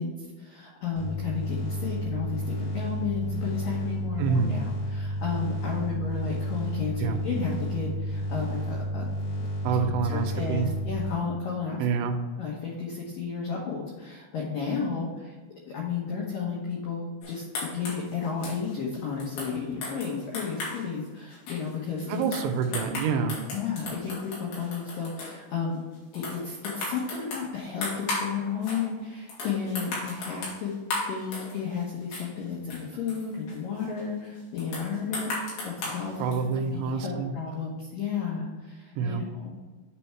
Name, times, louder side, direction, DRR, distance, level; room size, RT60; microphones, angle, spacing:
voice 1, 0.0-9.1 9.4-9.5 9.8-11.9 12.4-15.4 15.7-22.2 23.5-25.8 26.1-30.7 31.1-39.6, left 6 dB, 85° left, -3 dB, 1.9 m, -33 dB
sound 1, 1.0-11.1, equal, 45° left, 1.9 m, -31 dB
voice 2, 4.2-4.5 7.0-7.2 9.6-10.7 11.8-12.1 22.1-23.4 36.2-37.3 39.0-39.3, right 6 dB, 80° right, 5 dB, 2.8 m, -27 dB
sound 2, 17.2-20.9 21.3-25.4 25.9-28.3 28.6-28.9 29.3-31.8 32.1-34.0 34.6-36.6, left 2 dB, 65° left, 4.0 m, -36 dB
10.0 x 3.5 x 4.5 m, 1.4 s
omnidirectional pair, 5.7 m